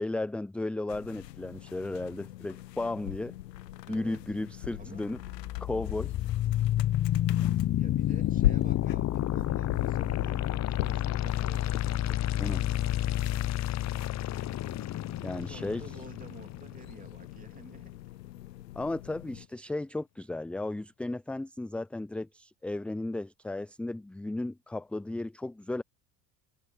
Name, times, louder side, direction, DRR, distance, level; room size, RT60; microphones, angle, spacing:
voice 1, 0.0-3.3 3.9-5.2 5.6-6.1 12.3-12.6 15.2-15.8 18.8-25.8, left 2 dB, 5° left, 0.4 m, -34 dB
sound 1, 0.9-19.5, left 14 dB, 85° left, 1.1 m, -39 dB
voice 2, 3.8-4.2 4.8-5.1 7.8-11.8 12.4-12.8 15.4-18.0, right 4 dB, 15° right, 3.0 m, -50 dB
sound 2, 5.2-17.2, left 13 dB, 35° left, 0.8 m, -30 dB
hypercardioid pair, 75°, 48 cm